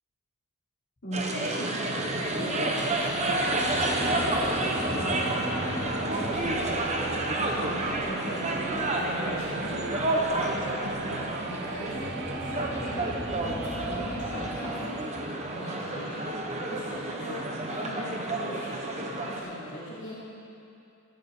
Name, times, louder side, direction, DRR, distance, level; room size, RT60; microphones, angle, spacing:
voice 1, 1.0-20.3, equal, 55° left, -8 dB, 3.0 m, -40 dB
sound 1, 1.1-19.4, right 1 dB, 30° right, 1.0 m, -30 dB
sound 2, 1.8-14.7, right 4 dB, 50° right, 0.5 m, -40 dB
sound 3, 3.5-8.5 11.9-16.8, left 2 dB, 15° left, 0.4 m, -40 dB
14.5 x 12.0 x 3.8 m, 2.6 s
head